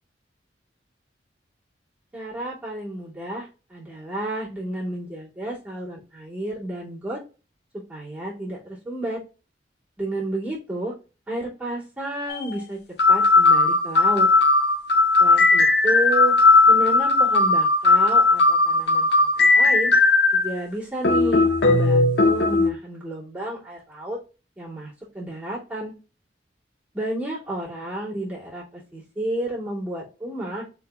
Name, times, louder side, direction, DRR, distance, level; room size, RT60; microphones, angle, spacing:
voice 1, 2.1-7.2 7.7-9.2 10.0-10.9 11.3-12.8 13.1-14.3 15.2-16.3 16.7-19.9 20.3-24.2 24.6-25.9 26.9-30.6, right 1 dB, 10° right, -9 dB, 2.5 m, -31 dB
sound 1, 12.3-12.4 13.0-20.5 21.0-22.7, left 3 dB, 65° left, 0.6 m, -17 dB
4.7 x 4.2 x 2.3 m, 0.32 s
head